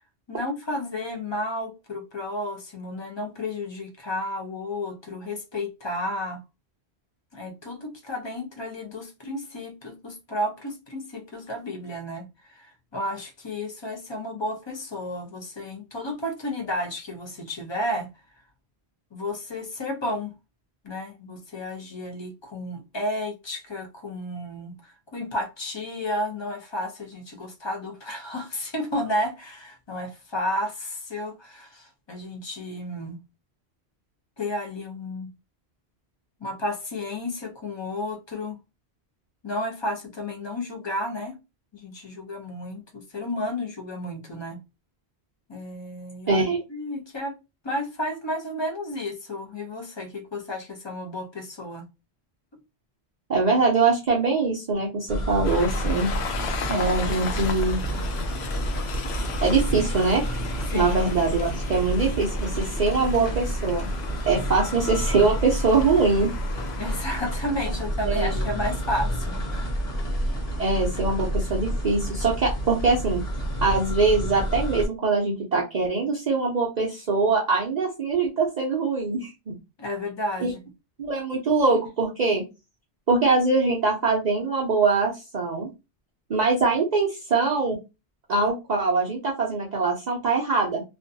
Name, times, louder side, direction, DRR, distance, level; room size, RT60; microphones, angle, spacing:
voice 1, 0.3-6.4 7.3-18.1 19.1-20.3 20.8-33.2 34.4-35.3 36.4-38.6 39.4-41.4 41.7-44.6 45.5-47.4 47.6-51.8 60.7-61.0 64.3-64.4 66.8-69.8 79.8-80.6, left 1 dB, 35° left, 0.5 m, -32 dB
voice 2, 46.3-46.6 53.3-56.1 56.7-57.8 59.4-60.2 60.7-64.0 64.3-66.3 68.0-68.5 70.6-73.2 73.6-79.5 80.4-80.5 81.0-82.4 83.1-85.7 86.3-87.8 88.3-90.8, right 3 dB, 50° right, 0.6 m, -23 dB
sound 1, 55.1-74.9, equal, 55° left, 1.2 m, -29 dB
Train, 55.4-67.4, left 5 dB, 75° left, 0.8 m, -36 dB
2.5 x 2.2 x 2.6 m
omnidirectional pair, 1.1 m